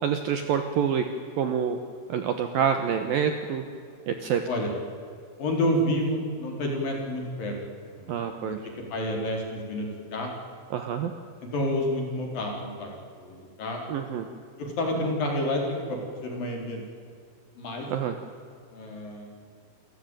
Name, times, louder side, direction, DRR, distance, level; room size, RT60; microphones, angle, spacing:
voice 1, 0.0-1.0 1.4-1.8 2.1-3.6 4.1-4.4 8.1-8.6 10.7-11.1 13.9-14.3 17.9-18.2, right 8 dB, 70° right, 7 dB, 2.4 m, -27 dB
voice 2, 5.4-7.6 7.9-8.6 8.9-10.3 11.4-12.9 13.2-13.8 14.6-16.8 17.6-17.9 18.7-19.3, left 1 dB, 50° left, 1 dB, 5.4 m, -29 dB
28.0 x 16.0 x 9.1 m, 2.3 s
omnidirectional pair, 5.3 m